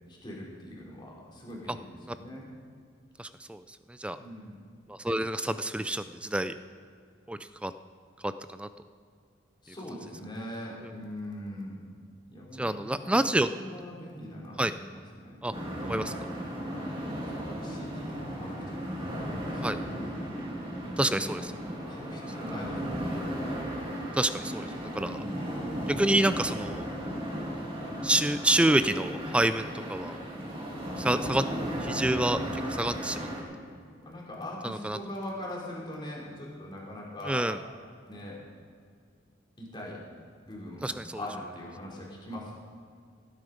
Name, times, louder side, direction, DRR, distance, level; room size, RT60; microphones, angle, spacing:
voice 1, 0.1-2.5 4.2-4.7 9.6-11.8 12.3-13.3 13.6-15.4 16.7-17.0 17.3-20.2 20.8-21.2 21.5-23.2 25.0-25.5 34.0-37.5 38.1-38.4 39.6-40.0 40.4-42.5, left 1 dB, 25° left, -4 dB, 3.2 m, -42 dB
voice 2, 3.2-4.2 4.9-6.5 7.3-7.7 8.2-8.7 9.7-9.8 12.6-13.5 14.6-14.7 15.4-15.5 15.8-16.1 19.6-19.8 21.0-21.5 24.1-25.2 26.0-26.8 28.0-30.2 31.0-31.4 31.8-33.3 34.6-35.0 37.2-37.6 40.8-41.2, right 1 dB, 5° right, 12 dB, 0.3 m, -28 dB
sound 1, 15.5-33.4, equal, 30° right, 2.4 m, -35 dB
17.0 x 9.5 x 5.1 m, 2.2 s
head